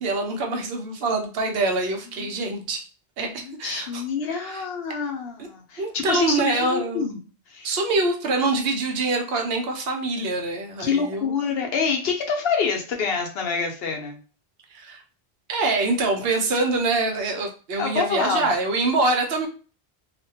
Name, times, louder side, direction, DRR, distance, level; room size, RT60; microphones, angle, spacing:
voice 1, 0.0-2.8 3.2-4.0 4.3-4.6 5.4-5.5 5.8-7.1 7.6-11.3 14.7-15.0 15.5-19.5, right 3 dB, 70° right, 2 dB, 0.8 m, -25 dB
voice 2, 3.3-7.2 7.5-7.7 10.8-14.2 17.8-18.5, left 5 dB, 70° left, 3 dB, 0.8 m, -26 dB
2.4 x 2.1 x 2.7 m, 0.37 s
omnidirectional pair, 1.1 m